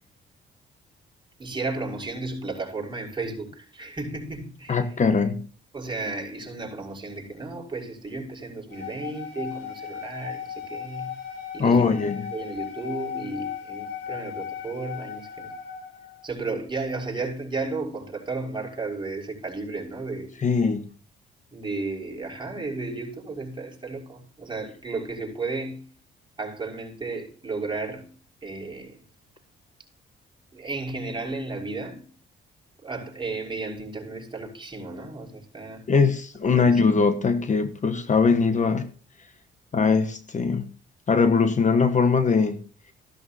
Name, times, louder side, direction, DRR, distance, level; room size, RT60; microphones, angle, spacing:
voice 1, 1.4-4.9 5.7-11.1 11.5-12.0 12.3-15.5 16.2-20.4 21.5-25.9 26.4-28.1 28.4-29.0 30.5-32.0 32.8-35.8 36.5-36.8, right 3 dB, 25° right, 5.7 m, -33 dB
voice 2, 4.7-5.5 11.6-12.3 20.4-20.8 35.9-38.9 39.7-40.7 41.1-42.6, left 5 dB, 40° left, 1.2 m, -21 dB
sound 1, 8.7-16.2, left 8 dB, 65° left, 6.7 m, -36 dB
15.0 x 12.5 x 2.8 m
cardioid pair, 90°, 20 cm